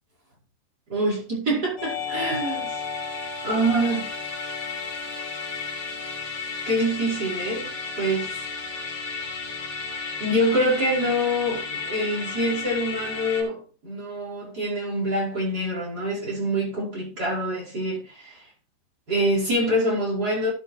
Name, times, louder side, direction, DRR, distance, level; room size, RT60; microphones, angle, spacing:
voice 1, 0.9-2.7 3.4-4.1 6.7-7.7 8.0-8.3 10.2-18.3 19.1-20.5, right 1 dB, 20° right, 5.3 m, -25 dB
Musical instrument, 1.8-13.4, left 5 dB, 50° left, 4.8 m, -33 dB
13.0 x 8.7 x 2.8 m
omnidirectional pair, 5.5 m